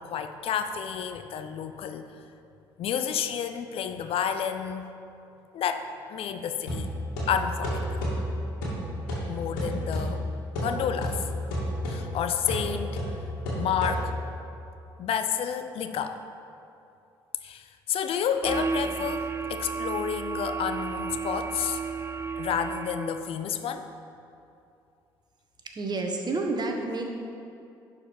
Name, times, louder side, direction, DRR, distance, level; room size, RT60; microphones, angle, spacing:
voice 1, 0.0-2.1 2.8-4.9 5.5-6.9 7.3-8.0 9.3-10.2 10.6-11.3 11.9-13.0 13.5-14.2 15.0-16.2 17.4-21.8 22.4-23.9, left 8 dB, 55° left, 8 dB, 0.6 m, -30 dB
sound 1, 6.7-14.4, equal, 80° left, 2.3 m, -31 dB
sound 2, 18.4-23.3, right 5 dB, 20° right, 0.4 m, -32 dB
voice 2, 25.7-27.1, right 3 dB, 40° right, 2 dB, 1.4 m, -29 dB
11.0 x 4.9 x 5.3 m, 2.6 s
hypercardioid pair, 55°, 11 cm